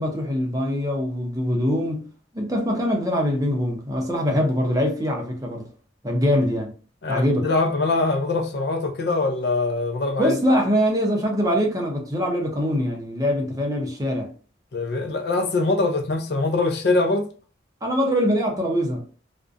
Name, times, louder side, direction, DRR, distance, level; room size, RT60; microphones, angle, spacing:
voice 1, 0.0-2.1 2.3-5.7 6.0-6.7 7.1-7.5 10.2-14.3 17.8-19.0, equal, 20° right, 0.5 m, -23 dB
voice 2, 7.0-10.3 14.7-17.3, left 3 dB, 55° left, 0.4 m, -23 dB
2.5 x 2.1 x 2.4 m
head